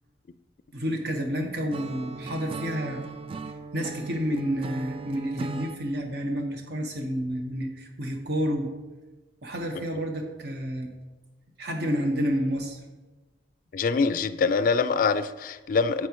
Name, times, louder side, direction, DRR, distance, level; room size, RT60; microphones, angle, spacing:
voice 1, 0.7-3.0 3.7-8.7 9.4-10.9 11.6-12.8, equal, 60° right, 1.3 m, -29 dB
Acoustic guitar / Strum, 1.7-5.8, right 3 dB, 30° right, 0.3 m, -38 dB
voice 2, 13.7-16.1, left 5 dB, 50° left, 0.3 m, -24 dB
8.8 x 7.6 x 3.1 m
head